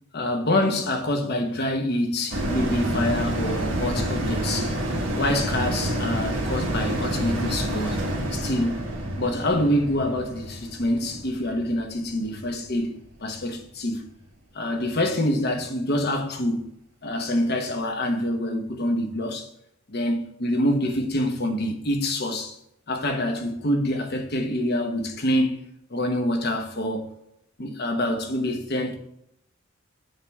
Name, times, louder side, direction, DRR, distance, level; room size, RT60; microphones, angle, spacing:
voice 1, 0.1-4.8 5.1-8.0 8.3-8.8 9.2-14.0 14.5-16.7 17.0-19.5 19.9-22.5 22.9-27.1 27.6-28.9, left 1 dB, 50° left, 1.1 m, -26 dB
sound 1, 2.3-13.0 13.4-13.5, right 1 dB, 85° right, 1.7 m, -28 dB
7.9 x 3.6 x 4.0 m
head